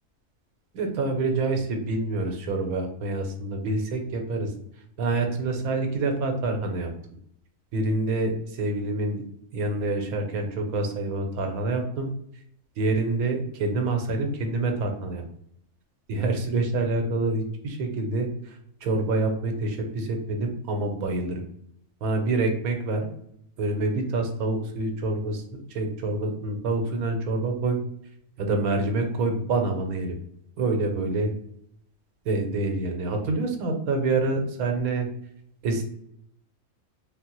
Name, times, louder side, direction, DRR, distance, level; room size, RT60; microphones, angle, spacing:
voice 1, 0.7-4.5 5.0-6.9 7.7-9.2 9.5-12.1 12.8-15.2 16.1-21.4 22.0-23.1 23.6-27.8 28.4-30.2 30.6-31.3 32.2-35.1 35.6-35.8, right 2 dB, 85° right, 3 dB, 1.1 m, -27 dB
3.4 x 2.0 x 2.9 m, 0.72 s
omnidirectional pair, 1.5 m